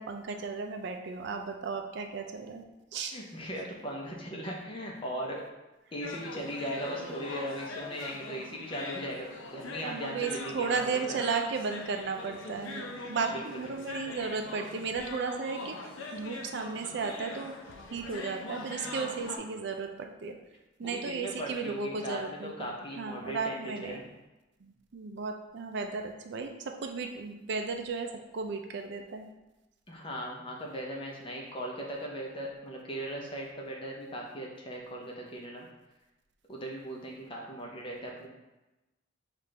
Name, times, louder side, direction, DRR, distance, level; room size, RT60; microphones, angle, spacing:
voice 1, 0.0-2.6 2.9-3.2 9.8-15.8 16.1-17.5 17.9-20.3 20.8-24.0 24.6-26.5 26.8-28.1 28.3-29.3, right 4 dB, 60° right, 5 dB, 0.4 m, -34 dB
voice 2, 3.1-5.4 5.9-11.2 13.3-14.0 20.8-24.0 29.9-35.7 36.5-38.3, equal, 25° left, -2 dB, 0.7 m, -38 dB
sound 1, 6.0-19.4, left 2 dB, 80° left, 0.6 m, -42 dB
5.7 x 2.5 x 3.3 m, 1.0 s
head